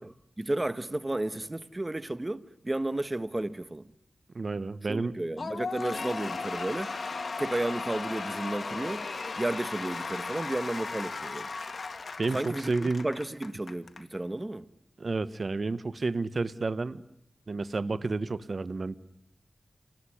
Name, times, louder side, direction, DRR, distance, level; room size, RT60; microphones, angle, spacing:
voice 1, 0.0-3.9 4.9-6.9 7.4-9.0 9.4-11.5 12.3-14.6, right 1 dB, 25° right, 1.4 m, -33 dB
voice 2, 4.3-5.1 12.2-13.1 15.0-17.0 17.5-19.0, right 3 dB, 60° right, 1.1 m, -30 dB
Cheering / Applause / Crowd, 5.4-14.0, left 4 dB, 70° left, 2.2 m, -36 dB
28.0 x 19.5 x 10.0 m
cardioid pair, 55°, 0 cm